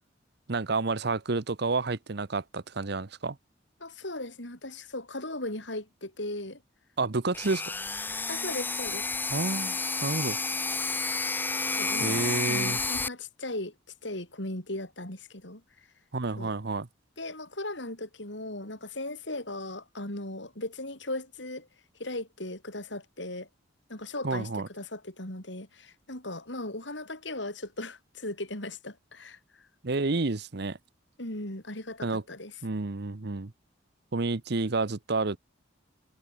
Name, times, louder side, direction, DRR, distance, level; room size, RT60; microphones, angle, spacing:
voice 1, 0.5-3.4 7.0-7.6 9.3-10.4 12.0-12.8 16.1-16.9 24.2-24.7 29.8-30.8 32.0-32.2 32.6-33.5 34.1-35.4, right 3 dB, 60° right, 0.9 m, -30 dB
voice 2, 3.8-6.6 8.3-9.1 11.8-13.7 14.0-15.6 16.4-16.5 17.2-21.7 22.0-23.5 23.9-29.4 31.2-32.5, left 2 dB, 65° left, 6.7 m, -37 dB
sound 1, 7.3-13.1, left 3 dB, 10° left, 0.5 m, -30 dB
head